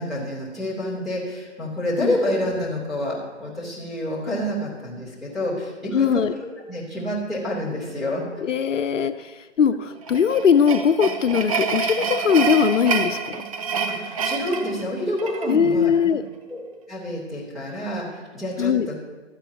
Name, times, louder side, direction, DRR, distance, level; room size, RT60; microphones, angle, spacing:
voice 1, 0.0-8.4 14.0-15.9 16.5-18.9, left 1 dB, ahead, -8 dB, 3.0 m, -28 dB
voice 2, 5.9-6.3 8.4-13.4 15.5-16.2 18.6-18.9, left 7 dB, 80° left, 10 dB, 0.8 m, -20 dB
sound 1, 10.0-15.5, right 5 dB, 30° right, 0.7 m, -27 dB
16.0 x 12.5 x 2.9 m, 1.2 s
hypercardioid pair, 155°, 37 cm